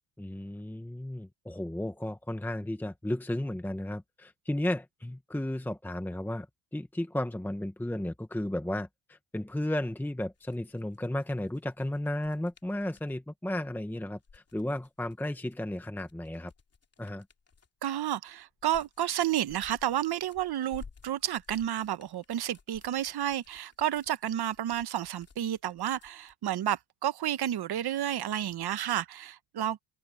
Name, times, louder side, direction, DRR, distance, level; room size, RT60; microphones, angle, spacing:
voice 1, 0.2-6.5 6.7-16.5 17.0-17.2, left 1 dB, 5° left, 1.2 m, -34 dB
sound 1, 10.3-13.1 14.1-17.8 18.3-26.3, left 5 dB, 30° left, 2.8 m, -56 dB
voice 2, 17.8-29.8, right 11 dB, 55° right, 1.0 m, -31 dB
cardioid pair, 105°, 47 cm